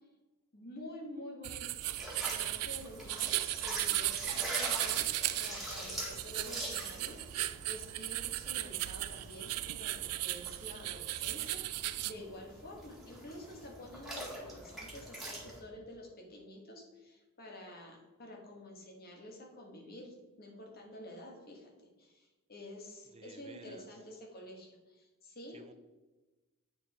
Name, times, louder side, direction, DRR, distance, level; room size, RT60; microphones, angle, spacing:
voice 1, 0.5-1.7 2.2-21.7 22.0-25.6, left 1 dB, 45° left, 0 dB, 1.7 m, -49 dB
sound 1, 1.4-12.1, right 16 dB, 80° right, 0.4 m, -36 dB
sound 2, 1.8-15.6, right 1 dB, ahead, 1.8 m, -44 dB
voice 2, 23.1-23.9 25.5-25.7, right 3 dB, 30° right, 8 dB, 0.6 m, -54 dB
8.5 x 4.7 x 4.3 m, 1.2 s
head